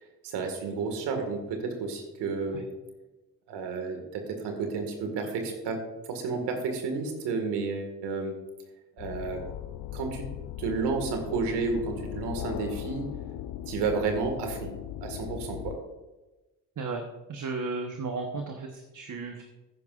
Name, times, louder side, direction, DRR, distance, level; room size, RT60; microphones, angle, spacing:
voice 1, 0.0-2.7 3.5-5.8 6.1-8.3 9.0-9.4 9.9-10.2 10.6-13.1 13.7-14.7 15.0-15.8, right 4 dB, 80° right, 5 dB, 2.0 m, -31 dB
sound 1, 9.0-15.8, left 12 dB, 60° left, 0.6 m, -38 dB
voice 2, 17.3-19.4, right 3 dB, 45° right, 3 dB, 1.2 m, -34 dB
13.5 x 10.5 x 2.5 m, 1.1 s
hypercardioid pair, 55°, 41 cm